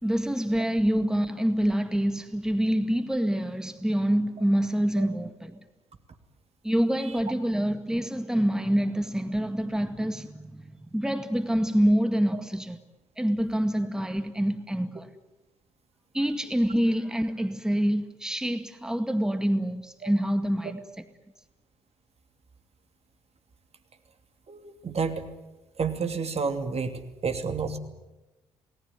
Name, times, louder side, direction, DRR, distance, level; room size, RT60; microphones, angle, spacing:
voice 1, 0.0-5.6 6.6-12.8 13.2-15.1 16.1-20.8, equal, 5° right, 2.0 m, -26 dB
voice 2, 24.5-25.3 25.8-27.8, right 5 dB, 40° right, 2.7 m, -30 dB
29.0 x 19.0 x 9.7 m
hypercardioid pair, 45°, 15 cm